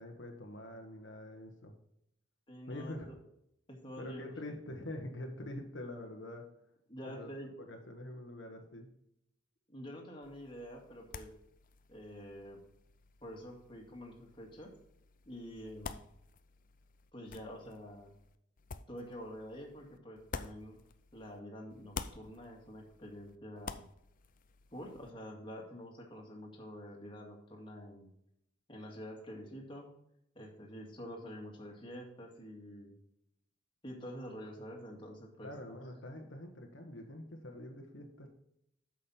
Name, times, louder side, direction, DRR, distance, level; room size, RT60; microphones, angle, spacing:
voice 1, 0.0-1.7 2.7-3.1 4.0-6.4 7.0-7.3 7.6-8.9 35.4-38.3, left 1 dB, 75° left, 2 dB, 1.3 m, -45 dB
voice 2, 2.5-3.2 3.7-4.3 6.9-7.5 9.7-11.3 11.9-12.6 13.2-14.7 15.3-16.0 17.1-18.1 18.9-20.8 21.1-23.8 24.7-28.1 28.7-30.0 30.4-33.0 33.8-35.8, equal, 25° left, -1 dB, 2.1 m, -47 dB
sound 1, 10.2-21.4 21.7-25.1, left 5 dB, 45° left, 0.5 m, -50 dB
8.8 x 6.4 x 4.4 m, 0.77 s
head